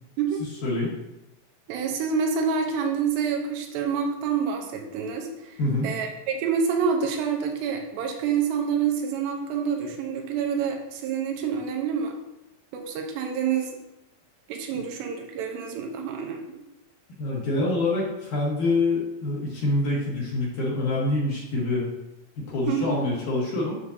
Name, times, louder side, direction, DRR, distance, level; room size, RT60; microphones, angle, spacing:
voice 1, 1.7-12.2 12.7-13.7 14.5-16.4 22.7-23.0, right 6 dB, 85° right, 3 dB, 3.0 m, -27 dB
voice 2, 5.6-5.9 17.2-21.8 22.4-23.8, left 2 dB, 60° left, -5 dB, 2.4 m, -26 dB
8.4 x 6.3 x 2.7 m, 0.91 s
omnidirectional pair, 4.8 m